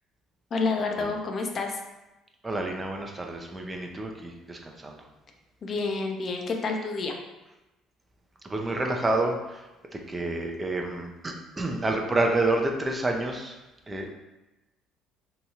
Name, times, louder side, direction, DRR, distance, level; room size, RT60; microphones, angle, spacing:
voice 1, 0.5-1.8 5.6-7.1, left 3 dB, 45° left, 3 dB, 0.4 m, -29 dB
voice 2, 2.4-5.0 8.4-9.6 9.9-13.6 13.9-14.1, right 2 dB, 25° right, 2 dB, 0.4 m, -29 dB
2.8 x 2.2 x 2.8 m, 1.0 s
hypercardioid pair, 65°, 0 cm